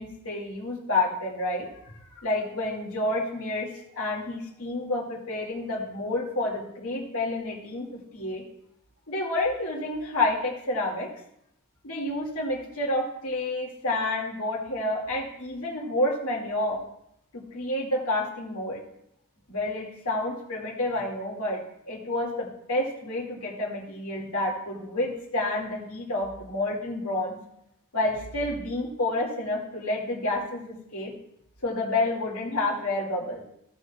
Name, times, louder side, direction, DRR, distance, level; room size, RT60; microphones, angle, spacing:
voice 1, 0.0-8.4 9.1-11.1 11.8-16.8 17.3-18.8 19.5-27.3 27.9-31.1 31.6-33.4, left 2 dB, 70° left, -3 dB, 2.4 m, -29 dB
16.5 x 6.4 x 2.4 m, 0.76 s
head